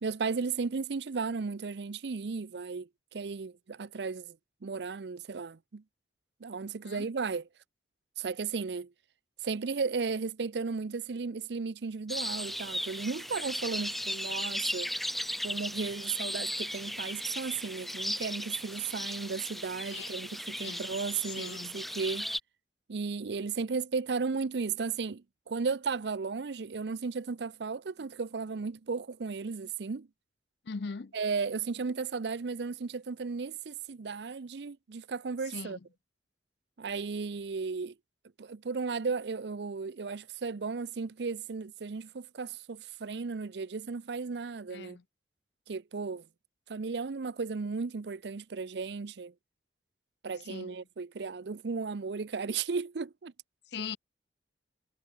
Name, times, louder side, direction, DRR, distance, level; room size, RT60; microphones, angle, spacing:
voice 1, 0.0-4.4 4.6-5.8 6.4-7.5 8.2-8.9 9.4-14.9 15.4-22.3 22.9-30.1 31.1-35.8 36.8-37.9 38.4-45.0 45.7-46.3 46.7-49.3 50.2-53.3, right 5 dB, 70° right, 0.6 m, -35 dB
sound 1, 12.1-22.4, equal, ahead, 0.6 m, -36 dB
voice 2, 21.4-21.7 30.7-31.1 35.5-35.8 44.7-45.0 50.5-50.8 53.7-54.0, left 5 dB, 70° left, 0.6 m, -40 dB
head